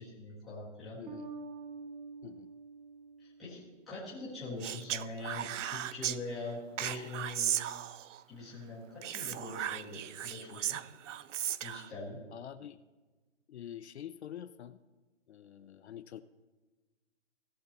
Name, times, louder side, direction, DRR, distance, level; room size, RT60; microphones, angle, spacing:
voice 1, 0.0-1.0 3.2-7.6 8.3-10.8 11.6-12.2, left 2 dB, ahead, -11 dB, 0.7 m, -43 dB
voice 2, 1.0-1.3 2.2-2.5 12.3-12.8 13.5-14.8 15.3-16.2, left 10 dB, 60° left, 12 dB, 0.5 m, -46 dB
Bass guitar, 1.1-4.1, right 4 dB, 40° right, 1.1 m, -47 dB
Speech, 4.6-6.2 6.8-8.2 9.0-11.9, right 11 dB, 75° right, 0.5 m, -36 dB
16.5 x 6.6 x 4.1 m, 1.3 s
hypercardioid pair, 175°, 37 cm